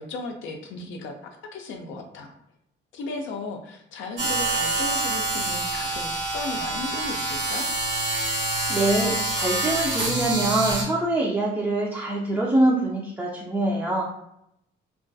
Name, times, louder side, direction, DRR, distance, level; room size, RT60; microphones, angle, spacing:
voice 1, 0.0-2.3 2.9-7.7, left 3 dB, 75° left, 3 dB, 0.4 m, -35 dB
sound 1, 4.2-10.8, right 2 dB, 65° right, 1.0 m, -26 dB
voice 2, 8.7-14.2, right 1 dB, 10° right, -5 dB, 0.4 m, -24 dB
2.3 x 2.2 x 2.6 m, 0.78 s
cardioid pair, 90°, 20 cm